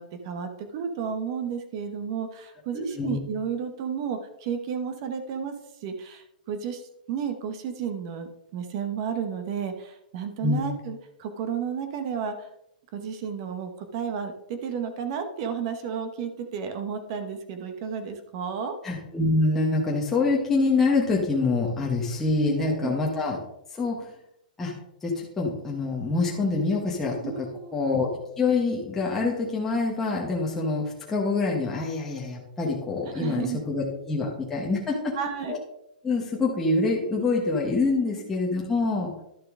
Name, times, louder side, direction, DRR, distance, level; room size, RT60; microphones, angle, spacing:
voice 1, 0.0-5.5 5.8-6.8 7.1-12.5 12.9-18.8 22.5-23.0 27.2-27.8 33.1-33.6 35.1-35.6 38.1-38.2, right 7 dB, 35° right, 8 dB, 0.9 m, -32 dB
voice 2, 2.7-3.2 10.4-10.7 18.8-23.4 23.8-24.1 24.6-24.7 25.0-27.5 27.7-35.1 35.5-35.6 36.0-39.1, left 3 dB, 5° left, -3 dB, 1.1 m, -26 dB
11.5 x 6.6 x 3.6 m, 0.79 s
hypercardioid pair, 170°, 5 cm